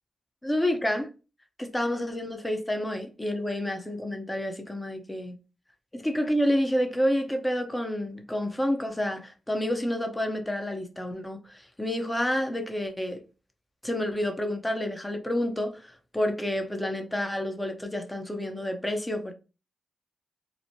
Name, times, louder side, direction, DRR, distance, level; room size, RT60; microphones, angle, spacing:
voice 1, 0.4-1.1 1.6-5.4 5.9-13.2 13.8-19.3, left 1 dB, 15° left, 0.7 m, -29 dB
3.0 x 2.1 x 2.6 m
supercardioid pair, 45°, 0 cm